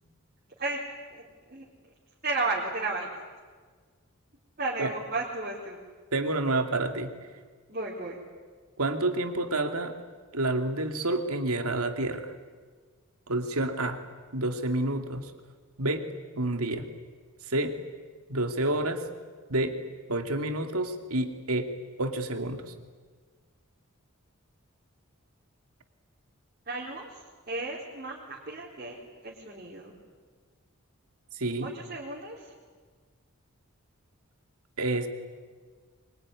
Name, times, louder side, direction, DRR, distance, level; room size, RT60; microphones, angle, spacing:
voice 1, 1.1-1.7 2.2-3.1 4.6-5.8 7.7-8.2 26.7-27.1 27.5-29.0 29.2-29.9 31.6-32.5, right 3 dB, 40° right, -4 dB, 3.9 m, -33 dB
voice 2, 6.1-7.1 8.8-10.0 10.3-12.3 13.3-14.0 14.3-15.3 15.8-16.9 17.5-17.8 18.3-19.1 19.5-19.8 20.1-21.7 22.0-22.7 31.4-31.7 34.8-35.1, right 2 dB, 90° right, 6 dB, 2.5 m, -29 dB
24.0 x 22.5 x 9.8 m, 1.5 s
head